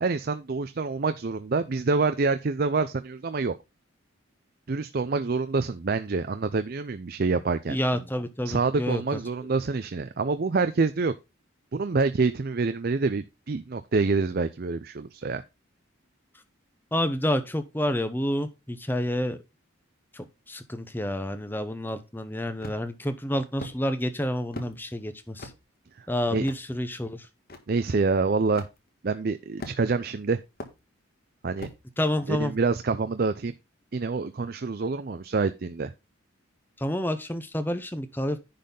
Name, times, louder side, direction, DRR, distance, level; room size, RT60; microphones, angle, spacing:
voice 1, 0.0-3.6 4.7-7.8 8.5-11.1 11.7-15.4 26.3-26.4 27.7-28.7 29.0-30.4 31.4-31.7 32.3-33.5 33.9-35.9, right 4 dB, 45° right, 0.5 m, -26 dB
voice 2, 7.7-9.0 16.9-19.4 20.1-25.5 26.1-27.3 32.0-32.5 36.8-38.4, left 1 dB, 10° left, 0.8 m, -29 dB
sound 1, 22.6-23.0 23.6-23.8 24.5-24.7 25.4-25.6 26.4-26.6 27.5-27.6 28.5-28.7 29.6-30.0 30.6-30.8 31.6-31.8, left 1 dB, 45° left, 1.6 m, -39 dB
10.5 x 4.1 x 5.3 m
head